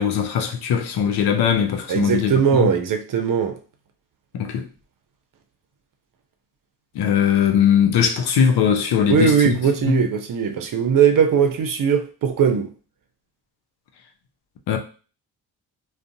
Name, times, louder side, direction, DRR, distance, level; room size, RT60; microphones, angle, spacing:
voice 1, 0.0-2.7 4.3-4.7 6.9-9.6 9.9-10.0 14.7-14.8, left 8 dB, 65° left, 0.7 m, -20 dB
voice 2, 1.9-3.6 9.1-12.7, right 7 dB, 50° right, 0.7 m, -19 dB
2.5 x 2.3 x 2.6 m
supercardioid pair, 50°, 41 cm